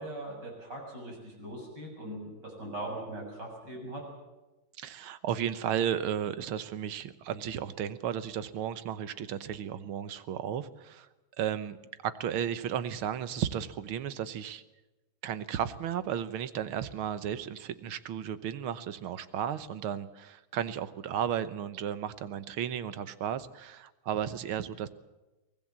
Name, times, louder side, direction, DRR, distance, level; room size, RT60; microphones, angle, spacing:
voice 1, 0.0-4.0, right 1 dB, 55° right, 1 dB, 7.8 m, -40 dB
voice 2, 4.8-11.1 11.4-11.8 12.0-14.6 15.2-24.9, right 9 dB, 90° right, 13 dB, 1.9 m, -34 dB
24.0 x 18.5 x 7.4 m, 1.0 s
omnidirectional pair, 2.2 m